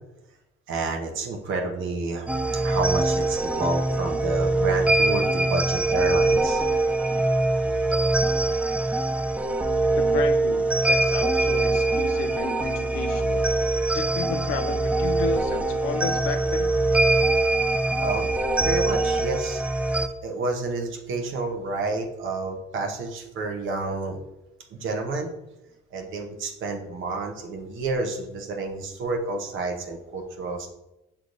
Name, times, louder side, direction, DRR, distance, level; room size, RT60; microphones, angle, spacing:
voice 1, 0.7-2.3 2.6-6.6 18.0-18.3 18.6-19.6 20.2-24.2 24.7-25.3 25.9-30.7, right 3 dB, 80° right, 2 dB, 0.8 m, -29 dB
sound 1, 2.3-20.1, right 2 dB, 5° right, 0.3 m, -23 dB
voice 2, 9.9-13.5 13.9-16.7, left 6 dB, 90° left, 8 dB, 0.5 m, -33 dB
6.0 x 3.4 x 2.6 m, 0.93 s
cardioid pair, 90°, 20 cm